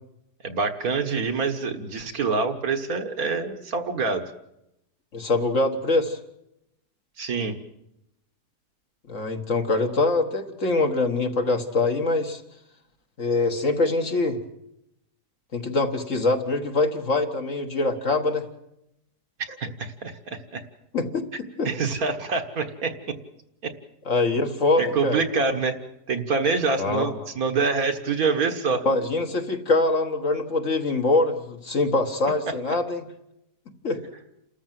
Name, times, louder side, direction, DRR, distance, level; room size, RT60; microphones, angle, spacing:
voice 1, 0.4-4.2 7.2-7.6 19.4-20.6 21.7-23.2 23.6-23.7 24.8-25.8 26.1-28.8, right 4 dB, 60° right, 6 dB, 1.8 m, -26 dB
voice 2, 5.1-6.2 9.1-12.4 13.2-14.4 15.5-18.5 20.9-21.3 21.6-21.7 24.1-25.2 26.8-27.1 28.9-33.0 33.8-34.0, left 2 dB, 50° left, 4 dB, 1.9 m, -24 dB
29.0 x 13.5 x 7.6 m, 0.85 s
omnidirectional pair, 1.7 m